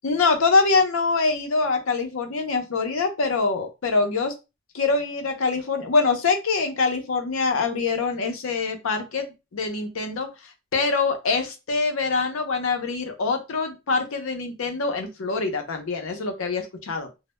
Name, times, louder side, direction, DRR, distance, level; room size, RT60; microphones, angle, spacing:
voice 1, 0.0-4.3 4.7-10.3 10.7-17.1, left 4 dB, 75° left, 6 dB, 0.5 m, -24 dB
2.1 x 2.0 x 2.9 m, 0.26 s
head